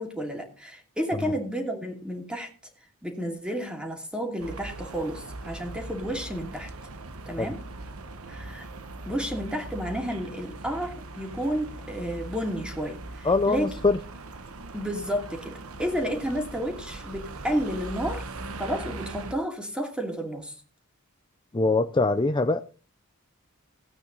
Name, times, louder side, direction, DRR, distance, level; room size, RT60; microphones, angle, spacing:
voice 1, 0.0-2.5 3.0-6.7 7.3-7.6 8.3-8.7 9.0-13.7 14.7-18.2 18.6-20.6, equal, 5° right, 2 dB, 2.6 m, -31 dB
sound 1, 4.4-19.3, right 2 dB, 70° right, 1.2 m, -40 dB
voice 2, 13.2-14.0 21.5-22.6, left 3 dB, 20° left, 9 dB, 0.5 m, -23 dB
17.0 x 8.9 x 4.0 m, 0.38 s
head